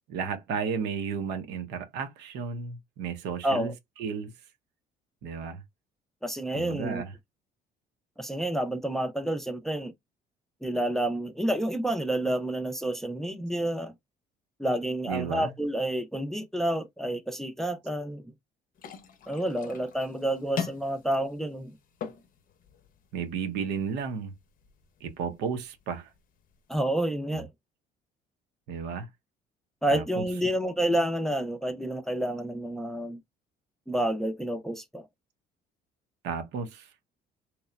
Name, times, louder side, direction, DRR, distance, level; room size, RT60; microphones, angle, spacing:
voice 1, 0.1-4.3 5.2-5.6 6.5-7.1 15.0-15.6 23.1-24.3 25.0-26.1 27.3-27.4 28.7-29.1 29.9-30.3 36.2-36.9, right 6 dB, 85° right, 0.7 m, -33 dB
voice 2, 3.4-3.7 6.2-7.0 8.2-9.9 10.6-13.9 14.6-18.2 19.3-21.8 26.7-27.5 29.8-33.2 33.9-35.1, right 1 dB, ahead, 0.4 m, -29 dB
sound 1, 18.8-26.8, left 7 dB, 55° left, 0.6 m, -43 dB
2.9 x 2.0 x 2.2 m
cardioid pair, 110°, 17 cm